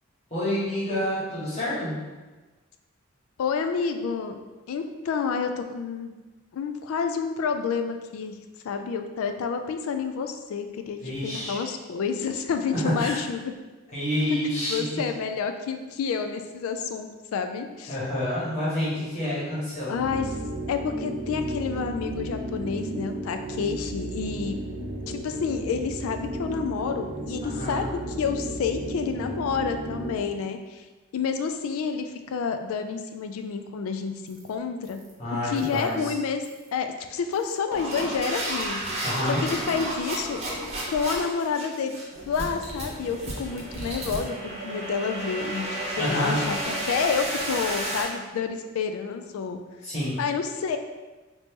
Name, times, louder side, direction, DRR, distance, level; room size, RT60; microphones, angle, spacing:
voice 1, 0.3-2.0 11.0-11.6 12.8-13.2 13.9-14.8 17.9-19.9 27.5-27.8 35.2-36.1 39.0-39.4 46.0-46.4 49.8-50.2, left 1 dB, 30° left, -9 dB, 1.3 m, -28 dB
voice 2, 3.4-4.4 4.7-6.2 6.5-8.4 8.6-13.5 14.3-14.4 14.7-18.0 19.9-20.3 20.7-24.6 25.1-30.9 31.1-35.0 35.4-36.4 36.7-38.8 39.4-40.4 40.9-42.0 42.3-45.7 45.9-49.6 50.2-50.8, left 5 dB, 90° left, 7 dB, 0.3 m, -29 dB
sound 1, 19.9-30.3, right 1 dB, 90° right, 0.6 m, -34 dB
sound 2, 34.3-34.5 34.8-35.1 35.6-35.9 36.4-36.7 37.3-48.0, right 1 dB, 30° right, 0.7 m, -32 dB
2.9 x 2.7 x 3.5 m, 1.2 s
head